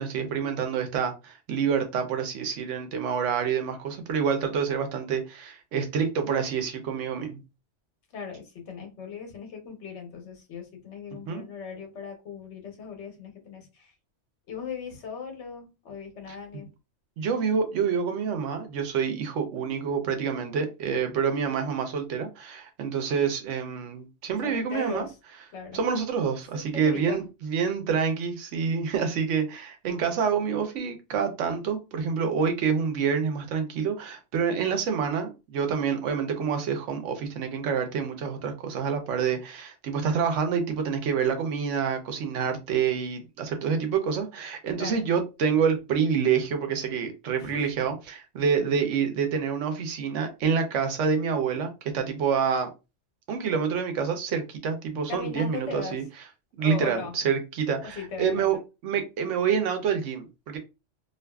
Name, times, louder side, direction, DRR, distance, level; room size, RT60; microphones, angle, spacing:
voice 1, 0.0-7.4 11.3-11.4 16.3-16.6 17.2-25.1 25.7-52.7 53.3-56.0 56.6-58.6 58.8-60.6, right 6 dB, 85° right, 1.0 m, -27 dB
voice 2, 8.1-13.9 14.5-16.7 24.4-25.1 25.5-25.8 26.5-27.2 44.8-45.0 47.4-47.7 55.1-56.0 56.6-57.2 57.8-58.6, left 5 dB, 70° left, 1.1 m, -38 dB
2.5 x 2.4 x 2.2 m
omnidirectional pair, 1.2 m